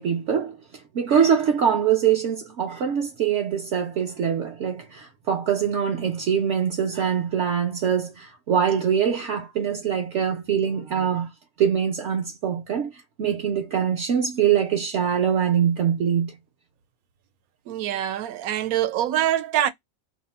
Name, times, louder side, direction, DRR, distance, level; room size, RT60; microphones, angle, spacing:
voice 1, 0.0-11.3 11.6-16.4, right 8 dB, 65° right, 0.8 m, -23 dB
voice 2, 17.7-19.7, right 11 dB, 85° right, 1.1 m, -24 dB
2.7 x 2.0 x 4.0 m
omnidirectional pair, 1.5 m